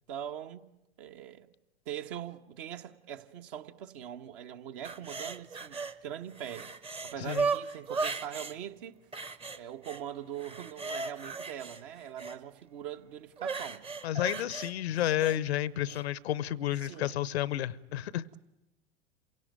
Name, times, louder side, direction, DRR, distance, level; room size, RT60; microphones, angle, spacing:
voice 1, 0.1-0.7 1.0-1.5 1.8-6.7 7.0-9.0 9.5-13.8 16.8-17.2, right 10 dB, 50° right, 1.4 m, -42 dB
sound 1, 4.8-6.0 6.3-8.6 9.1-10.0 10.4-12.4 13.4-15.4 15.9-16.0, right 4 dB, 15° right, 1.0 m, -36 dB
voice 2, 14.0-18.2, left 12 dB, 65° left, 0.8 m, -31 dB
27.0 x 17.5 x 9.2 m
figure-of-eight pair, 95°, 34 cm